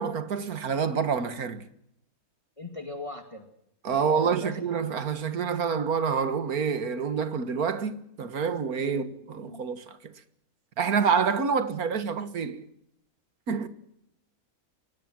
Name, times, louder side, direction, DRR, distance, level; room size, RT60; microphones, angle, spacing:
voice 1, 0.0-1.6 3.8-10.1 10.8-12.7 13.5-13.7, right 6 dB, 90° right, 2.0 m, -27 dB
voice 2, 2.6-3.5 3.9-5.0 8.8-9.0 9.4-9.6, left 2 dB, 20° left, 2.3 m, -40 dB
23.0 x 19.5 x 7.5 m
omnidirectional pair, 1.5 m